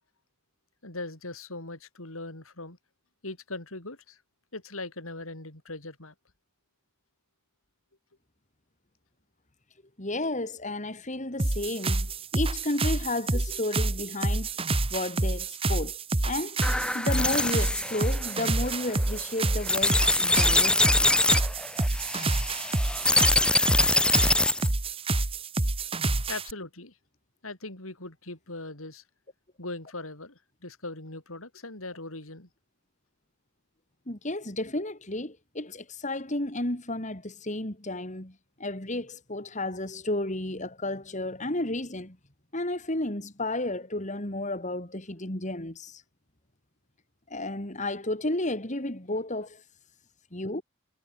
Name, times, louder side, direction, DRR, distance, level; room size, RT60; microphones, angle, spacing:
voice 1, 0.8-2.8 3.2-4.2 4.5-6.1 26.3-27.0 27.4-29.0 29.6-32.5, left 2 dB, 85° left, 5.8 m, -40 dB
voice 2, 10.0-14.5 14.9-16.0 16.2-16.6 16.9-21.1 34.1-38.3 38.6-42.2 42.5-46.0 47.3-49.6 50.3-50.6, left 1 dB, 35° left, 3.2 m, -32 dB
sound 1, 11.4-26.5, right 2 dB, 25° right, 1.2 m, -28 dB
sound 2, 16.6-24.7, left 2 dB, 5° left, 0.5 m, -24 dB
head